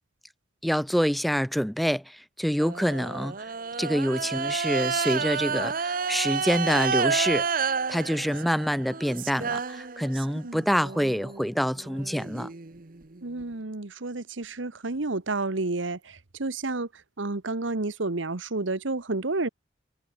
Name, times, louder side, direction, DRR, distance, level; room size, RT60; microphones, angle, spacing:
voice 1, 0.6-3.3 3.8-7.5 7.9-12.5, equal, ahead, 0.7 m, -26 dB
sound 1, 2.6-10.4 10.8-13.4, right 5 dB, 50° right, 1.0 m, -30 dB
voice 2, 13.2-16.9 17.2-19.5, right 2 dB, 85° right, 1.4 m, -30 dB
head